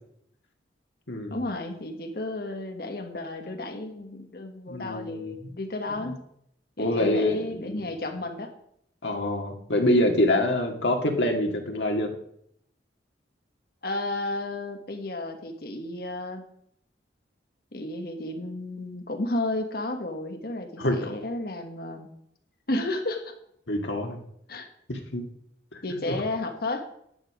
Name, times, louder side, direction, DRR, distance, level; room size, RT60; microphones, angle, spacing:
voice 1, 1.3-6.2 6.8-8.5 13.8-16.4 17.7-22.1 22.7-23.3 24.5-24.7 25.8-26.9, left 2 dB, 55° left, 6 dB, 1.3 m, -32 dB
voice 2, 4.7-5.3 6.8-7.8 9.0-12.1 20.8-21.1 23.7-24.2 24.9-25.2 25.7-25.8 26.1-26.2, left 1 dB, 75° left, 3 dB, 2.0 m, -25 dB
10.5 x 9.8 x 4.9 m, 0.71 s
head